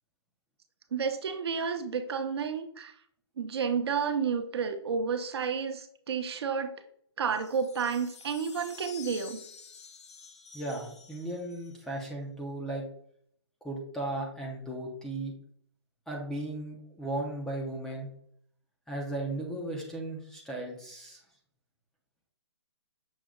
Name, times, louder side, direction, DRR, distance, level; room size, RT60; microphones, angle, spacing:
voice 1, 0.9-2.9 3.4-6.8 7.2-9.4, right 6 dB, 60° right, 8 dB, 0.6 m, -31 dB
sound 1, 7.3-12.0, left 5 dB, 75° left, 0.8 m, -49 dB
voice 2, 10.5-12.8 13.6-15.3 16.1-18.1 18.9-21.2, right 1 dB, 5° left, -1 dB, 0.4 m, -36 dB
6.2 x 2.2 x 3.6 m, 0.65 s
hypercardioid pair, 155°, 15 cm